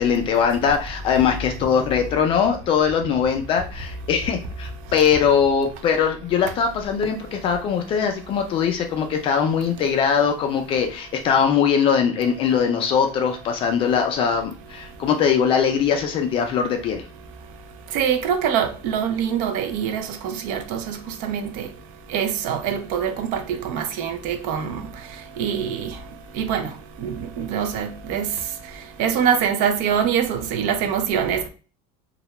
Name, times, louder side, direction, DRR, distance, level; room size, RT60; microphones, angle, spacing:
voice 1, 0.0-17.0, left 7 dB, 30° left, 0.4 m, -21 dB
voice 2, 17.9-21.7 22.1-24.8 25.4-25.9 26.4-26.7 27.0-28.3 29.0-31.5, right 8 dB, 50° right, 0.5 m, -24 dB
2.3 x 2.1 x 2.8 m
cardioid pair, 170°, 18 cm